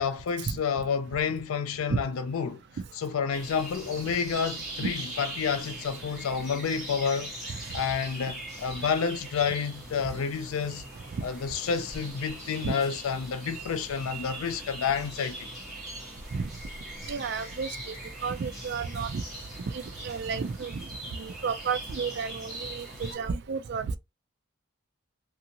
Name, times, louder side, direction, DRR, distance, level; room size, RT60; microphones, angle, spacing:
voice 1, 0.0-2.6 2.9-7.3 7.7-10.8 11.2-15.5, left 6 dB, 75° left, 0.4 m, -29 dB
sound 1, 3.3-23.1, right 1 dB, ahead, 1.4 m, -41 dB
voice 2, 17.1-17.9 18.2-19.2 19.7-24.0, right 5 dB, 50° right, 0.3 m, -32 dB
2.6 x 2.6 x 2.8 m
head